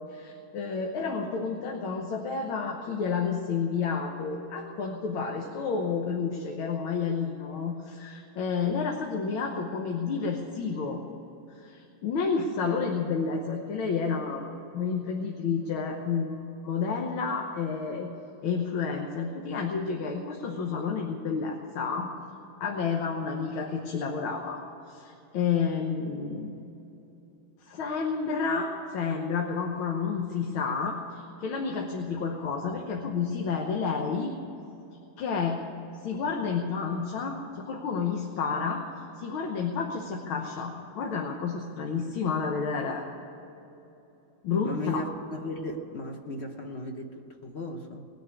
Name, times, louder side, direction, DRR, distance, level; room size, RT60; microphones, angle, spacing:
voice 1, 0.1-11.0 11.6-14.5 14.7-18.1 18.4-22.1 22.6-24.6 24.9-26.6 27.6-34.4 35.2-35.6 36.0-38.8 39.2-43.0 44.4-45.0, left 5 dB, 85° left, 2 dB, 1.9 m, -30 dB
voice 2, 44.6-48.1, left 2 dB, 45° left, 4 dB, 0.8 m, -36 dB
20.0 x 6.7 x 9.5 m, 3.0 s
omnidirectional pair, 2.2 m